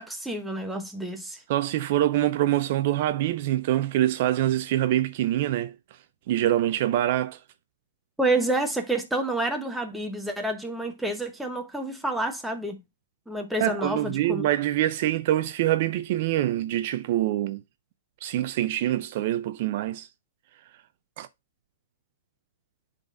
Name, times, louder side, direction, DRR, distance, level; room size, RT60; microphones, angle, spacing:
voice 1, 0.0-1.4 8.2-12.8 13.3-14.5, right 2 dB, ahead, 0.9 m, -29 dB
voice 2, 1.5-6.0 6.3-7.4 13.6-17.6 18.2-20.1 21.2-21.3, right 13 dB, 40° right, 0.4 m, -25 dB
10.5 x 3.9 x 2.5 m
hypercardioid pair, 165°, 0 cm